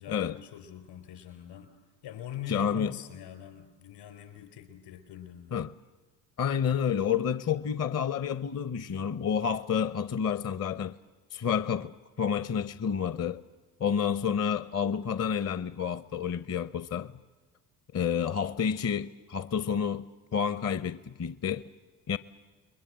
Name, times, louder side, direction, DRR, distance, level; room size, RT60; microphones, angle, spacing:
voice 1, 0.0-1.7 2.0-5.6, left 10 dB, 65° left, 4.5 m, -43 dB
voice 2, 2.5-2.9 5.5-5.7 6.4-11.0 11.3-13.4 13.8-17.1 17.9-21.6 22.1-22.2, left 7 dB, 35° left, 0.7 m, -29 dB
29.5 x 22.0 x 7.7 m
hypercardioid pair, 60°, 47 cm